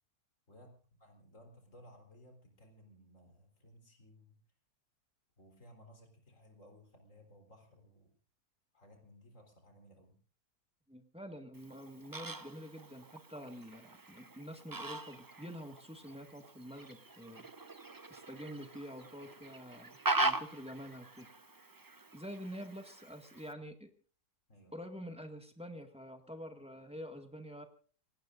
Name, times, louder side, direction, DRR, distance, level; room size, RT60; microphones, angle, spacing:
voice 1, 1.0-4.4 5.4-8.1 8.7-10.2 24.5-24.7, equal, 55° left, 4 dB, 4.6 m, -59 dB
voice 2, 10.9-17.5 18.1-21.3 22.1-23.9 24.7-27.6, equal, 5° right, 5 dB, 1.8 m, -47 dB
Fowl, 11.5-23.5, right 2 dB, 25° right, 0.4 m, -41 dB
28.0 x 18.0 x 2.6 m, 0.42 s
omnidirectional pair, 1.6 m